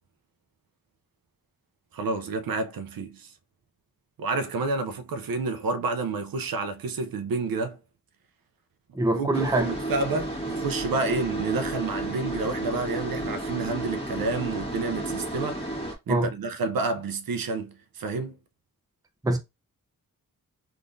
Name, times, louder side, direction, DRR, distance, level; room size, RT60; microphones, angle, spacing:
voice 1, 1.9-3.3 4.2-7.8 9.1-15.6 16.1-18.4, right 3 dB, 80° right, 0.5 m, -29 dB
voice 2, 8.9-9.7 16.1-16.3 19.2-19.4, right 2 dB, 10° right, 0.5 m, -23 dB
sound 1, 9.3-15.9, right 1 dB, 15° left, 1.1 m, -32 dB
3.6 x 2.5 x 2.5 m
wide cardioid pair, 110°, 34 cm